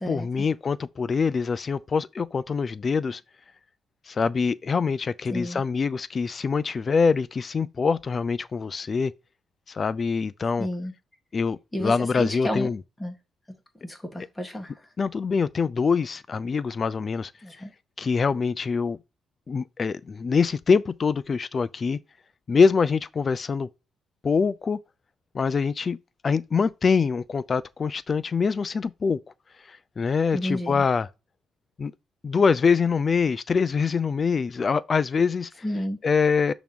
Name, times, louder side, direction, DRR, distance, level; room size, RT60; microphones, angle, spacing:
voice 1, 0.0-3.2 4.1-9.1 9.7-10.7 11.3-12.8 15.0-17.3 18.0-19.0 19.5-22.0 22.5-23.7 24.2-24.8 25.3-26.0 26.2-29.2 29.7-31.1 31.8-31.9 32.2-35.5 36.0-36.5, left 5 dB, 40° left, 0.4 m, -24 dB
voice 2, 5.3-5.6 10.6-10.9 11.7-12.7 13.0-13.1 13.8-14.7 17.4-17.7 30.3-30.8 35.6-36.0, left 1 dB, 10° left, 1.7 m, -31 dB
6.0 x 3.0 x 5.3 m
cardioid pair, 90°, 0 cm